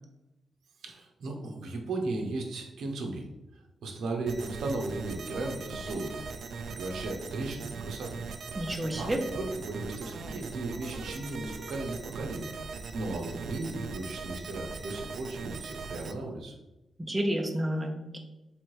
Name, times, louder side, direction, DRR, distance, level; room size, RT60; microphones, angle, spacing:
voice 1, 0.8-3.3 3.5-6.3 6.7-8.2 9.0-12.5 12.9-16.5, right 2 dB, 80° right, 2 dB, 0.8 m, -36 dB
sound 1, 4.3-16.1, right 4 dB, 65° right, 0.4 m, -40 dB
voice 2, 8.5-9.2 17.0-18.2, right 1 dB, 10° right, 2 dB, 0.6 m, -30 dB
3.4 x 3.1 x 4.5 m, 0.96 s
cardioid pair, 110°, 0 cm